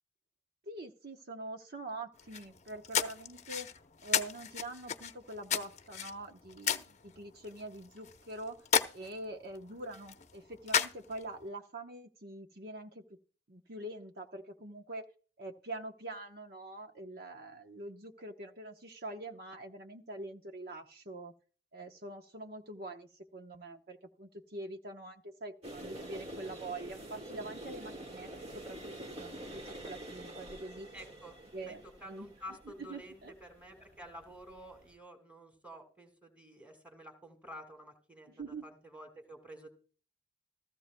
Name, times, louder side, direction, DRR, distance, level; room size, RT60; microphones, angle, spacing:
voice 1, 0.7-3.7 4.0-8.6 8.9-13.0 13.5-15.1 15.4-21.3 21.7-29.3 29.6-30.9 31.5-32.3 32.8-33.3 38.3-38.7, right 2 dB, 55° right, 4 dB, 1.0 m, -44 dB
sound 1, 2.2-11.5, left 7 dB, 40° left, 0.8 m, -36 dB
sound 2, 25.6-35.0, right 1 dB, 35° right, 1.8 m, -47 dB
voice 2, 30.9-39.7, equal, 10° right, 6 dB, 2.5 m, -50 dB
16.0 x 15.0 x 2.3 m, 0.40 s
head